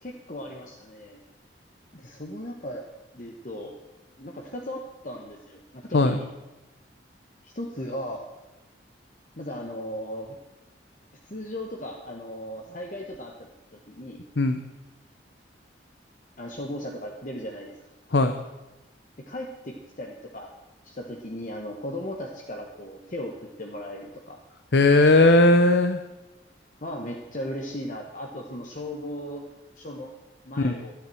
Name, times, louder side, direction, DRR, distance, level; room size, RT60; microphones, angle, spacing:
voice 1, 0.0-1.2 1.9-2.8 3.1-3.8 4.2-6.3 7.4-8.3 9.4-10.4 11.3-14.2 16.4-17.8 19.2-20.5 20.8-24.4 26.8-29.4 29.8-30.1 30.4-30.9, left 1 dB, 45° left, 1 dB, 1.2 m, -37 dB
voice 2, 24.7-26.0 30.6-30.8, left 2 dB, 70° left, 8 dB, 0.7 m, -18 dB
12.5 x 10.5 x 7.7 m, 1.1 s
head